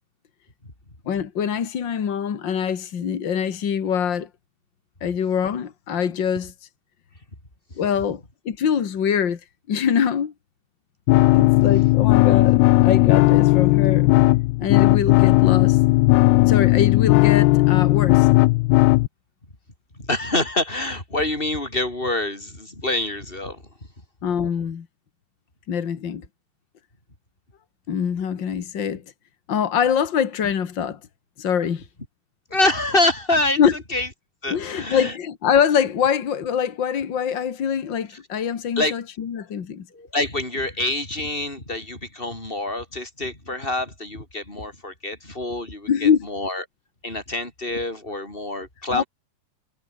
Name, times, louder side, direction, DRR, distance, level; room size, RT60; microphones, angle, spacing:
voice 1, 1.0-4.3 5.0-6.5 7.7-9.4 9.7-10.3 11.3-14.1 14.6-15.8 16.4-18.3 24.2-24.9 25.7-26.2 27.9-29.0 29.5-31.0 31.4-31.8 33.6-33.7 34.5-39.9 45.9-46.3 48.9-49.0, left 8 dB, 65° left, 1.1 m, -24 dB
sound 1, 11.1-19.1, left 21 dB, 85° left, 2.5 m, -16 dB
voice 2, 20.0-23.6 32.5-33.6 33.9-34.1 34.4-35.1 38.8-39.0 39.9-46.6 47.0-49.0, left 2 dB, 10° left, 6.9 m, -26 dB
omnidirectional pair, 4.9 m